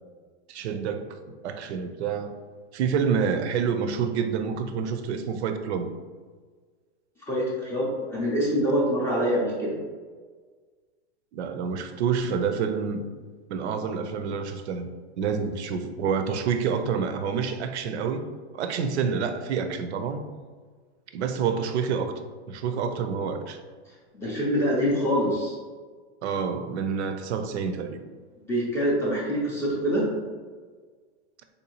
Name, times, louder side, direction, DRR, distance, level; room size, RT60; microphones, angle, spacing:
voice 1, 0.5-1.1 1.4-2.3 2.7-5.9 11.3-13.0 13.5-18.3 18.5-20.2 21.1-22.1 22.5-23.6 26.2-28.0, right 6 dB, 75° right, 8 dB, 0.5 m, -28 dB
voice 2, 7.3-9.8 19.0-19.1 24.1-25.5 28.5-30.1, equal, 10° left, -6 dB, 0.4 m, -25 dB
3.4 x 2.7 x 2.8 m, 1.5 s
supercardioid pair, 145°, 33 cm